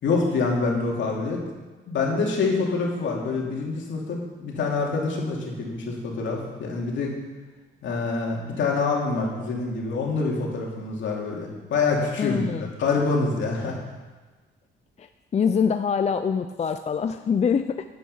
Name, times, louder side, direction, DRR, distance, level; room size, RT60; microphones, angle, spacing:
voice 1, 0.0-1.4 1.9-7.1 7.8-13.8, left 4 dB, 70° left, -1 dB, 2.7 m, -26 dB
voice 2, 12.2-12.7 15.0-15.1 15.3-17.8, left 6 dB, 35° left, 8 dB, 0.5 m, -24 dB
9.4 x 9.3 x 5.5 m, 1.3 s
cardioid pair, 90°, 20 cm